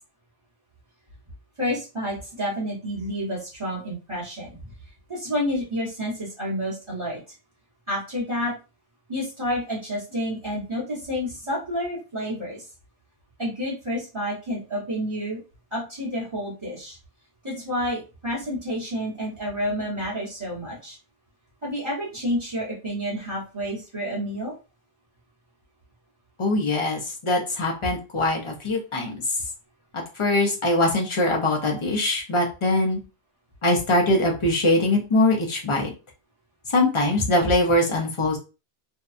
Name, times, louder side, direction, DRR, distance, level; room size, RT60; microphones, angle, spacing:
voice 1, 1.6-4.5 5.1-7.2 7.9-8.5 9.1-12.6 13.4-15.4 15.7-17.0 17.4-21.0 21.6-24.5, equal, 30° right, -6 dB, 1.0 m, -29 dB
voice 2, 26.4-29.2 29.9-33.0 33.6-35.9 36.7-38.4, left 1 dB, 35° left, 0 dB, 0.6 m, -22 dB
2.7 x 2.2 x 2.4 m, 0.31 s
omnidirectional pair, 1.1 m